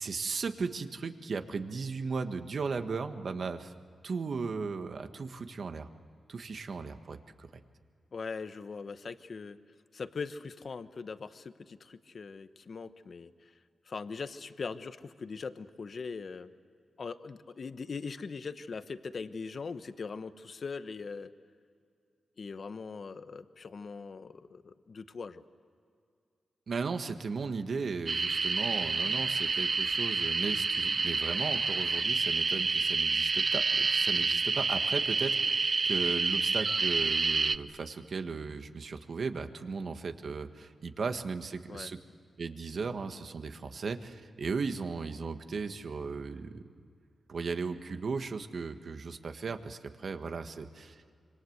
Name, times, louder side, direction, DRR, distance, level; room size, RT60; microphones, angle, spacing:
voice 1, 0.0-3.7 4.0-5.9 6.3-7.6 26.7-42.0 42.4-46.7 47.3-51.1, right 4 dB, 60° right, 8 dB, 1.5 m, -36 dB
voice 2, 8.1-9.6 9.9-13.5 13.8-16.5 17.0-21.3 22.4-25.4 41.7-41.9, left 4 dB, 55° left, 11 dB, 1.0 m, -41 dB
sound 1, 28.1-37.6, right 4 dB, 40° right, 0.5 m, -28 dB
26.5 x 24.5 x 8.0 m, 2.3 s
wide cardioid pair, 95°, 0 cm